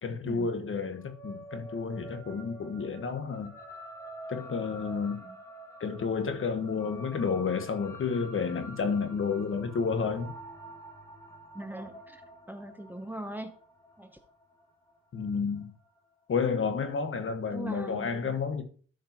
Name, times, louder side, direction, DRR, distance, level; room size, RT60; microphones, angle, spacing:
voice 1, 0.0-3.5 4.3-5.2 5.8-10.3 15.1-15.7 16.3-18.6, left 5 dB, 45° left, 1.4 m, -31 dB
sound 1, 0.9-15.6, right 1 dB, 10° left, 2.0 m, -47 dB
voice 2, 11.5-13.6 14.0-14.2 17.5-18.4, right 1 dB, 5° right, 0.8 m, -41 dB
13.0 x 5.1 x 3.0 m
cardioid pair, 90°, 30 cm